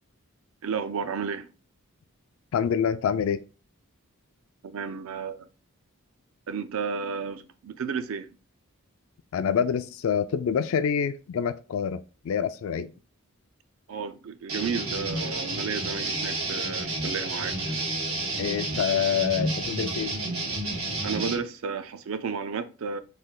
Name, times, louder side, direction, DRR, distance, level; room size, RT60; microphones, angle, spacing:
voice 1, 0.6-1.5 4.6-5.5 6.5-8.4 13.9-17.6 21.0-23.0, right 5 dB, 65° right, 0.4 m, -32 dB
voice 2, 2.5-3.4 9.3-12.9 18.4-20.1, left 7 dB, 65° left, 0.3 m, -26 dB
sound 1, 14.5-21.3, right 2 dB, 85° right, 1.4 m, -30 dB
3.2 x 2.4 x 3.7 m
head